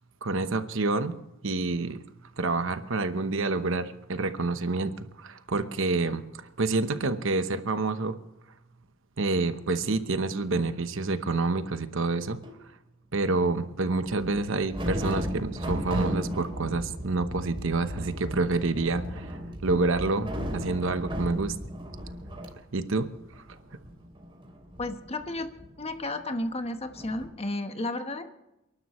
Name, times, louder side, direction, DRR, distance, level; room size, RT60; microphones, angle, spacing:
voice 1, 0.2-1.2 1.4-2.0 2.4-8.2 9.2-12.4 13.1-21.5 22.7-23.1, right 3 dB, 65° right, 10 dB, 1.0 m, -28 dB
sound 1, 12.4-12.6 13.9-22.5 22.8-22.9 23.1-26.4 26.9-27.2, equal, 25° right, 3.0 m, -35 dB
voice 2, 24.8-25.5 25.8-28.2, left 2 dB, 30° left, 7 dB, 1.2 m, -32 dB
29.0 x 11.5 x 3.1 m, 0.91 s
head